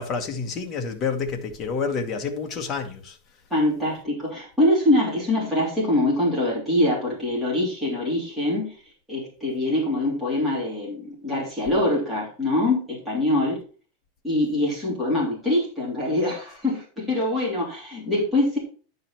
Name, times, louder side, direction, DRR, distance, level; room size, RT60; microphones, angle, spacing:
voice 1, 0.0-3.2, left 5 dB, 20° left, 1.2 m, -29 dB
voice 2, 3.5-8.7 9.1-13.6 14.2-18.6, left 1 dB, ahead, 3.1 m, -24 dB
10.0 x 5.0 x 4.4 m
supercardioid pair, 175°, 0 cm